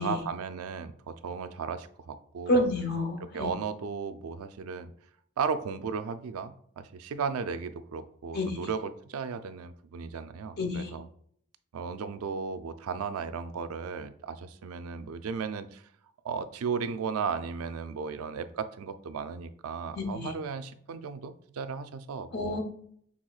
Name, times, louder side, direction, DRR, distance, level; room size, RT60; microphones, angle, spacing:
voice 1, 0.0-2.7 3.2-4.9 5.4-11.1 11.7-15.8 16.2-22.6, right 5 dB, 80° right, 11 dB, 0.4 m, -35 dB
voice 2, 2.5-3.5 8.3-8.6 10.6-10.9 20.0-20.3 22.3-22.6, left 1 dB, 45° left, 4 dB, 0.9 m, -29 dB
6.2 x 3.4 x 2.3 m, 0.63 s
head